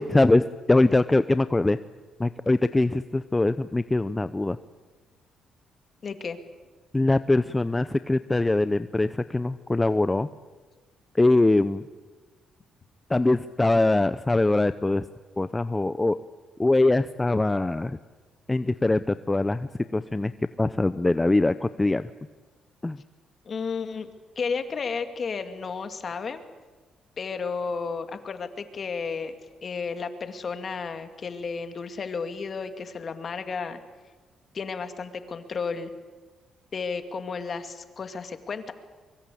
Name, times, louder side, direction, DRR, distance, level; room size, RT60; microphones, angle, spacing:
voice 1, 0.0-1.8 2.2-4.6 6.9-10.3 11.2-11.8 13.1-15.1 15.4-16.2 16.6-18.0 18.5-20.3 20.6-22.1 22.8-23.0, left 2 dB, 15° left, 13 dB, 0.7 m, -22 dB
voice 2, 6.0-6.4 23.4-24.1 24.4-26.5 27.2-29.3 29.6-33.8 34.5-35.9 36.7-38.7, left 5 dB, 45° left, 8 dB, 2.5 m, -32 dB
24.0 x 23.0 x 8.6 m, 1.3 s
cardioid pair, 90°, 0 cm